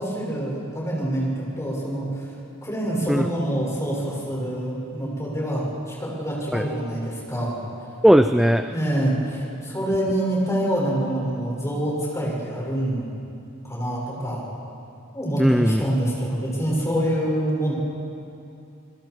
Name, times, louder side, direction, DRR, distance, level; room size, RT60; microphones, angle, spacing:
voice 1, 0.0-2.3 2.6-7.6 8.7-13.1 13.6-14.4 15.1-17.7, right 1 dB, 15° left, -4 dB, 6.0 m, -26 dB
voice 2, 8.0-8.6 15.4-15.8, equal, ahead, 7 dB, 0.5 m, -17 dB
28.5 x 22.0 x 4.7 m, 2.7 s
head